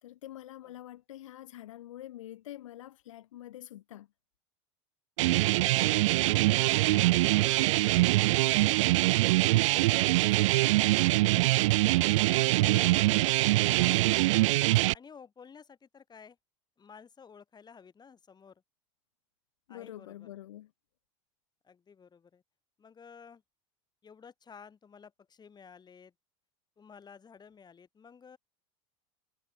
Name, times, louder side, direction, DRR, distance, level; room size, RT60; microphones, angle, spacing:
voice 1, 0.0-4.1 12.6-13.1 19.7-20.7, left 13 dB, 80° left, 4.0 m, -46 dB
voice 2, 5.2-9.1 9.6-11.5 12.1-14.3 14.9-16.4 16.8-18.6 19.7-20.3 21.6-22.4 22.8-23.4 24.0-26.1 26.8-28.4, left 6 dB, 25° left, 6.0 m, -54 dB
sound 1, 5.2-14.9, right 19 dB, 75° right, 0.4 m, -24 dB
hypercardioid pair, 90°, 16 cm